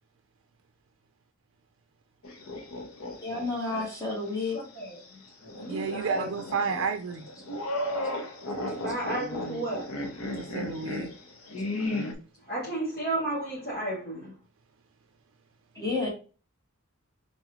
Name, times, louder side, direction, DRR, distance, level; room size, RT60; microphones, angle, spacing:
sound 1, 2.2-3.9 4.3-4.4 5.4-12.1, left 1 dB, 80° left, 0.9 m, -35 dB
voice 1, 3.2-4.6 15.7-16.1, left 3 dB, 15° left, 1.1 m, -30 dB
voice 2, 4.5-5.2 5.5-6.3 8.0-10.5 12.5-14.3, right 2 dB, 50° left, 2.2 m, -34 dB
voice 3, 5.7-7.3 10.4-11.1, right 5 dB, 65° right, 0.4 m, -31 dB
3.9 x 3.7 x 3.0 m
head